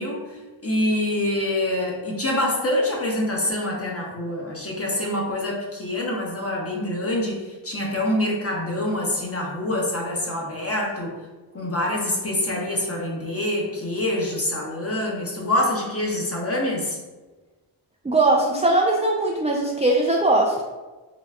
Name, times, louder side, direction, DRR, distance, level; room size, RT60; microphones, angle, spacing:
voice 1, 0.0-11.1 11.5-17.0, left 1 dB, 30° left, -3 dB, 1.2 m, -26 dB
voice 2, 18.0-20.6, right 2 dB, 15° right, -2 dB, 0.4 m, -20 dB
4.1 x 2.3 x 3.4 m, 1.2 s
cardioid pair, 65°, 49 cm